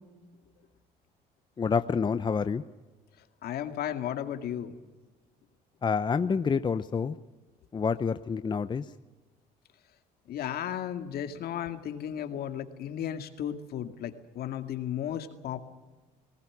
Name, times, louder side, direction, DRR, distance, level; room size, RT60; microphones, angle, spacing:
voice 1, 1.6-2.6 5.8-7.2 7.7-8.9, left 5 dB, 25° left, 11 dB, 0.7 m, -28 dB
voice 2, 3.4-4.7 10.3-15.6, left 10 dB, 65° left, 7 dB, 2.2 m, -34 dB
20.0 x 19.0 x 9.8 m, 1.2 s
cardioid pair, 110°, 17 cm